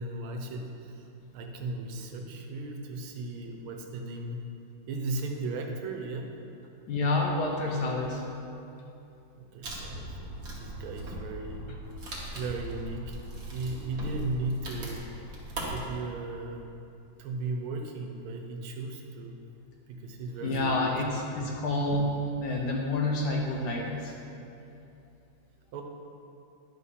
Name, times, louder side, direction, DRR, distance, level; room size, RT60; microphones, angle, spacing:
voice 1, 0.0-4.5 4.9-6.3 9.4-11.8 12.3-13.2 13.5-15.2 15.7-16.7 17.2-19.4 19.9-20.9 25.7-25.8, right 2 dB, 80° right, 3 dB, 1.7 m, -36 dB
voice 2, 6.9-8.2 20.4-24.1, left 2 dB, 60° left, -1 dB, 1.3 m, -28 dB
Wood, 9.6-15.8, right 1 dB, 45° right, 1.7 m, -39 dB
10.5 x 4.3 x 5.6 m, 2.7 s
omnidirectional pair, 2.3 m